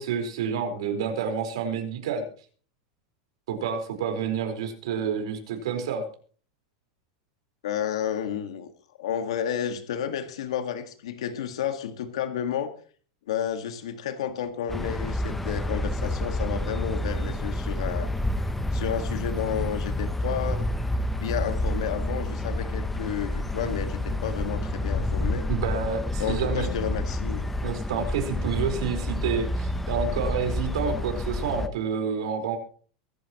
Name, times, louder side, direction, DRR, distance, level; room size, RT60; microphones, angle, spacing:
voice 1, 0.0-2.2 3.5-6.0 25.5-26.7 27.6-32.6, right 6 dB, 75° right, 4 dB, 4.5 m, -29 dB
voice 2, 7.6-8.7 9.0-12.7 13.3-18.1 18.7-20.7 21.2-25.5 26.2-27.5, left 8 dB, 85° left, 8 dB, 1.8 m, -31 dB
sound 1, 14.7-31.7, left 1 dB, 5° left, 0.8 m, -29 dB
23.5 x 11.0 x 3.0 m, 0.42 s
supercardioid pair, 170°, 3 cm